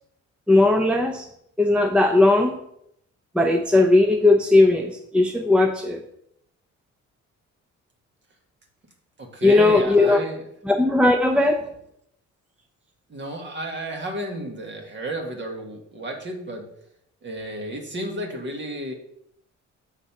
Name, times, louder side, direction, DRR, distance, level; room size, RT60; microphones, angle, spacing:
voice 1, 0.5-1.3 1.6-2.6 3.3-6.0 9.4-10.2 10.7-11.6, left 2 dB, 5° right, 4 dB, 0.7 m, -18 dB
voice 2, 9.2-10.4 13.1-16.7 17.2-18.9, right 1 dB, 40° right, 2 dB, 1.8 m, -32 dB
7.2 x 3.9 x 5.9 m, 0.74 s
cardioid pair, 90°, 30 cm